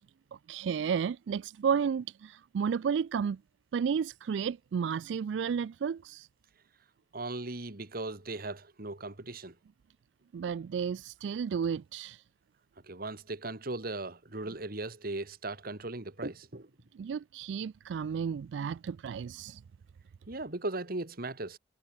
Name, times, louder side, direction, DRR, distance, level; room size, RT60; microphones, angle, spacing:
voice 1, 0.5-3.4 3.7-6.3 10.3-12.2 16.9-19.6, right 7 dB, 85° right, 0.3 m, -32 dB
voice 2, 7.1-9.5 12.8-16.7 20.3-21.6, right 2 dB, 55° right, 2.0 m, -38 dB
head